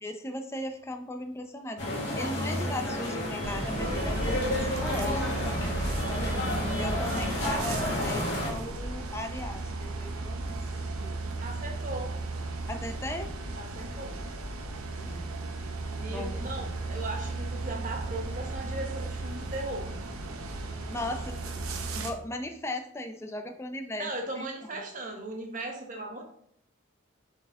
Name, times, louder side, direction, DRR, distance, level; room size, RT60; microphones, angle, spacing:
voice 1, 0.0-1.8 2.1-5.7 6.8-11.2 12.7-13.3 15.1-15.4 16.0-16.7 20.9-24.1 24.4-24.5, left 1 dB, 10° left, 5 dB, 0.5 m, -38 dB
sound 1, 1.8-8.5, left 1 dB, 50° left, 2.1 m, -31 dB
sound 2, 3.4-22.1, right 2 dB, 90° right, 0.8 m, -35 dB
voice 2, 11.4-12.1 13.6-14.2 15.9-19.9 24.0-26.2, right 2 dB, 35° right, 1 dB, 1.1 m, -37 dB
6.9 x 4.3 x 3.6 m, 0.71 s
head